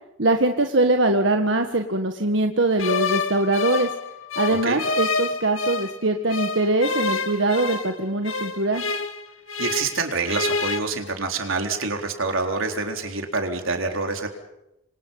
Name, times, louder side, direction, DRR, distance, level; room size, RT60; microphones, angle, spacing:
voice 1, 0.2-3.9 4.4-8.8, right 2 dB, 65° right, 5 dB, 1.6 m, -22 dB
sound 1, 2.8-6.0 6.3-10.0 10.2-10.8, left 4 dB, 85° left, 2.2 m, -27 dB
voice 2, 4.5-4.8 9.6-14.3, right 3 dB, 85° right, 4 dB, 4.1 m, -26 dB
27.5 x 25.5 x 5.6 m, 0.87 s
head